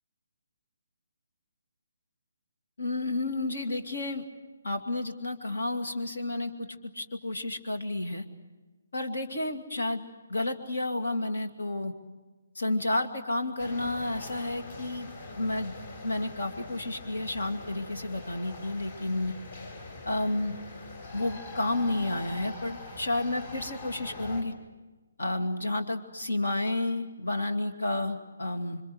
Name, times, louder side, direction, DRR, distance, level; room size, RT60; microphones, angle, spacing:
voice 1, 2.8-4.2 4.6-8.2 8.9-10.0 10.3-11.9 12.5-15.1 15.4-15.7 16.0-19.3 20.1-20.6 21.1-24.5 25.2-28.8, left 2 dB, 65° left, 6 dB, 2.5 m, -31 dB
sound 1, 13.6-24.4, left 2 dB, 45° left, 6.1 m, -43 dB
28.0 x 25.5 x 8.0 m, 1.2 s
figure-of-eight pair, 140°, 0 cm